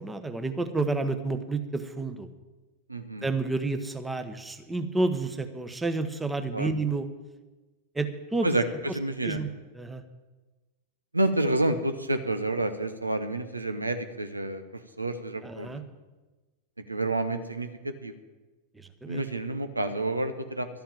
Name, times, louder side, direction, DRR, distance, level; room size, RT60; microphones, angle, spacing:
voice 1, 0.0-2.3 3.2-7.1 7.9-8.6 8.9-9.0 9.2-9.5 9.7-10.0 15.4-15.8 18.7-19.2, right 3 dB, 10° right, 9 dB, 1.0 m, -30 dB
voice 2, 2.9-3.2 6.5-6.7 8.4-8.6 8.9-9.4 11.1-14.6 15.0-15.8 16.9-18.1 19.1-20.7, right 2 dB, 80° right, 9 dB, 0.8 m, -29 dB
12.5 x 7.1 x 9.0 m, 1.2 s
figure-of-eight pair, 90°, 0 cm